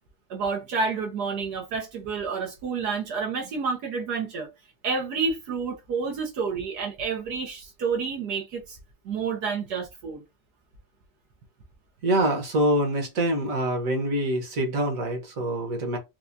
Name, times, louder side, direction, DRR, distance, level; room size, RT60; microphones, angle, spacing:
voice 1, 0.3-4.5 4.8-8.8 9.0-10.2, right 5 dB, 75° right, 1.4 m, -29 dB
voice 2, 12.0-16.0, right 1 dB, 55° right, 1.6 m, -25 dB
4.7 x 2.2 x 2.6 m
omnidirectional pair, 1.7 m